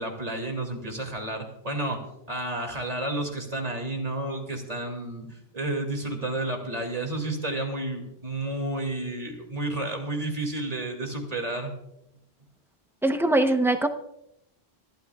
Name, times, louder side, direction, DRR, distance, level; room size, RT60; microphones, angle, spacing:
voice 1, 0.0-11.7, right 2 dB, 35° right, 3 dB, 2.5 m, -31 dB
voice 2, 13.0-13.9, right 2 dB, 5° right, 7 dB, 0.7 m, -22 dB
25.0 x 12.5 x 2.4 m, 0.81 s
omnidirectional pair, 1.1 m